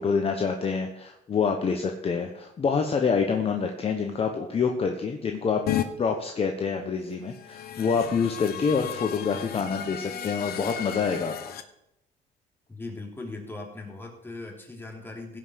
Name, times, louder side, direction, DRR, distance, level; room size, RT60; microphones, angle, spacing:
voice 1, 0.0-5.6 6.0-11.3, left 5 dB, 35° left, 4 dB, 1.2 m, -26 dB
sound 1, 5.7-5.9 7.3-11.6, left 11 dB, 65° left, 1.1 m, -34 dB
voice 2, 12.7-15.4, left 2 dB, 15° left, 0 dB, 3.2 m, -39 dB
16.5 x 5.8 x 6.5 m, 0.82 s
cardioid pair, 110°, 17 cm